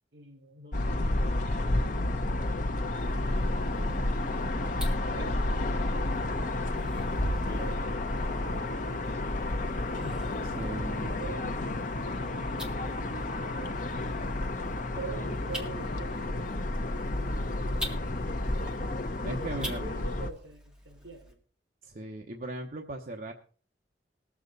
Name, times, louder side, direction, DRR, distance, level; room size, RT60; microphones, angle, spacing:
voice 1, 0.1-2.7 3.1-4.7 5.1-6.8 7.5-13.8 14.9-18.2 19.3-21.4, right 3 dB, 80° right, 2 dB, 4.7 m, -47 dB
sound 1, 0.7-20.3, left 2 dB, 50° left, 0.8 m, -31 dB
sound 2, 3.0-21.3, equal, 5° right, 2.0 m, -42 dB
voice 2, 10.4-11.2 19.2-19.8 21.8-23.3, right 1 dB, 50° right, 2 dB, 0.9 m, -38 dB
20.5 x 7.3 x 4.0 m, 0.40 s
head